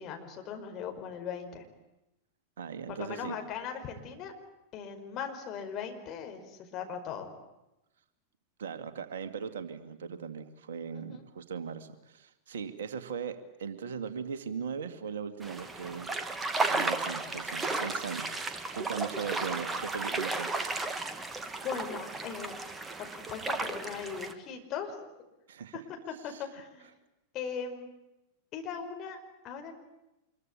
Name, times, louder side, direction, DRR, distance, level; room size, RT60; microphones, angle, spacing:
voice 1, 0.0-1.6 2.9-4.3 4.7-7.3 10.9-11.2 21.6-22.5 23.0-25.1 25.7-26.9 27.3-27.9 28.5-29.8, left 7 dB, 35° left, 4 dB, 5.0 m, -39 dB
voice 2, 2.6-3.4 8.6-16.1 16.7-20.5 25.5-25.8 26.3-26.4, right 6 dB, 60° right, 10 dB, 2.1 m, -39 dB
sound 1, 15.4-24.3, right 3 dB, 15° right, 2.1 m, -34 dB
26.0 x 23.0 x 8.7 m, 0.93 s
figure-of-eight pair, 90°, 0 cm